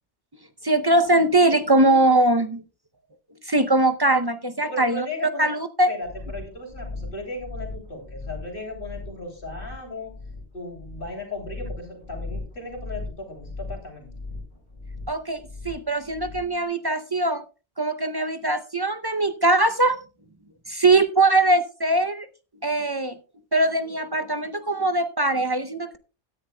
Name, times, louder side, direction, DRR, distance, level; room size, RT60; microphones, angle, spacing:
voice 1, 0.6-2.6 3.4-5.1 5.4-5.9 15.1-17.4 17.8-20.0 20.7-22.3 22.6-23.2 23.5-26.0, right 2 dB, 30° right, 10 dB, 0.5 m, -21 dB
voice 2, 4.6-5.5 5.9-10.2 10.5-14.1, left 2 dB, 50° left, 2 dB, 3.2 m, -36 dB
sound 1, 6.0-16.6, left 3 dB, 25° left, 5.8 m, -38 dB
17.0 x 10.0 x 2.2 m, 0.33 s
omnidirectional pair, 1.2 m